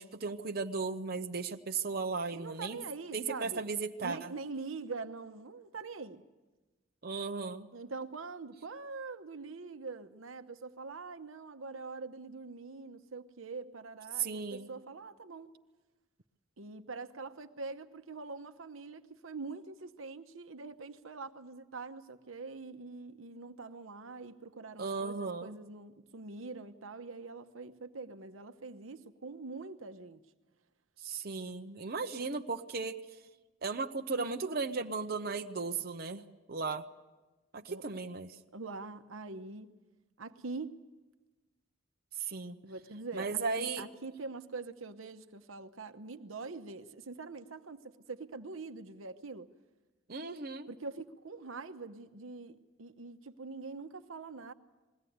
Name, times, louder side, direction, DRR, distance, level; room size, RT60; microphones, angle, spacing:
voice 1, 0.0-2.8 3.1-4.3 7.0-7.7 14.2-14.7 24.8-25.6 31.0-33.0 33.6-36.8 37.5-38.4 42.2-42.6 43.1-43.9 50.1-50.7, right 4 dB, 50° right, 0.8 m, -36 dB
voice 2, 2.3-3.7 4.0-6.2 7.7-15.5 16.6-30.2 37.7-37.9 38.5-39.7 40.2-40.8 42.6-49.5 50.7-54.5, right 3 dB, 85° right, 1.0 m, -44 dB
21.0 x 16.5 x 9.4 m
head